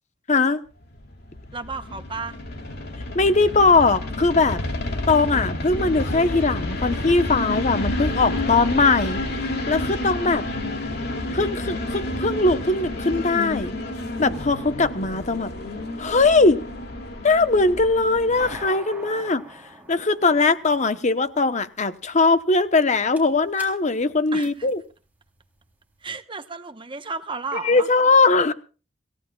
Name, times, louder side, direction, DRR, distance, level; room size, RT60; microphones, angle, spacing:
voice 1, 0.3-0.6 3.1-4.6 5.1-9.2 9.7-10.4 11.3-13.7 14.2-15.5 16.0-16.6 17.2-19.4 19.9-24.8 27.6-28.5, left 3 dB, 40° left, 1.0 m, -20 dB
sound 1, 1.0-18.6, left 1 dB, 60° left, 2.5 m, -30 dB
voice 2, 1.5-2.4 24.3-24.7 26.0-27.9, right 4 dB, 25° right, 1.0 m, -33 dB
sound 2, 18.4-25.9, right 2 dB, 10° right, 3.5 m, -45 dB
27.0 x 15.5 x 2.3 m
head